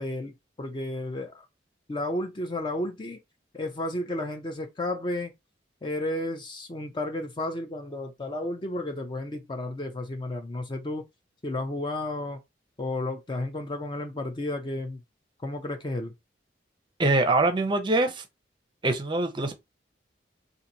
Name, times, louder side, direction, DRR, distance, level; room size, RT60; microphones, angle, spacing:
voice 1, 0.0-1.5 1.9-3.2 3.5-5.3 5.8-11.1 11.4-12.4 12.8-15.0 15.4-16.1, left 1 dB, 25° left, 0.5 m, -32 dB
voice 2, 17.0-18.2 18.8-19.6, right 2 dB, 25° right, 0.6 m, -24 dB
2.9 x 2.5 x 3.9 m
head